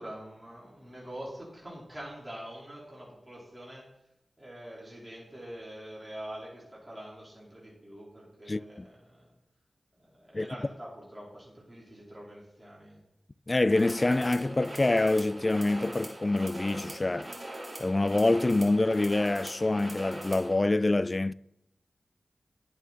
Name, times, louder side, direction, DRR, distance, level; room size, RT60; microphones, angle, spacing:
voice 1, 0.0-3.9 4.4-9.3 9.9-13.0, right 1 dB, 15° right, 5.2 m, -45 dB
voice 2, 8.5-8.9 10.3-10.5 13.5-17.3 17.8-21.3, left 2 dB, 35° left, 0.4 m, -26 dB
sound 1, 13.7-20.5, right 1 dB, 35° right, 3.0 m, -41 dB
11.0 x 9.0 x 4.6 m
cardioid pair, 40°, 0 cm